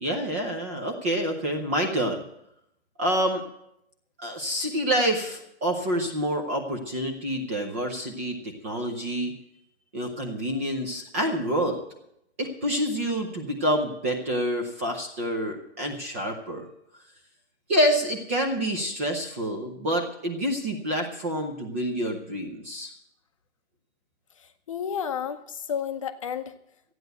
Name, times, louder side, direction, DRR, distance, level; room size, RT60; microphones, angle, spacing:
voice 1, 0.0-2.2 3.0-3.4 4.2-9.3 9.9-11.8 12.4-16.7 17.7-22.9, equal, 15° right, 3 dB, 0.6 m, -27 dB
voice 2, 24.4-26.5, left 8 dB, 30° left, 8 dB, 0.7 m, -32 dB
14.0 x 9.3 x 7.9 m, 0.79 s
hypercardioid pair, 165°, 34 cm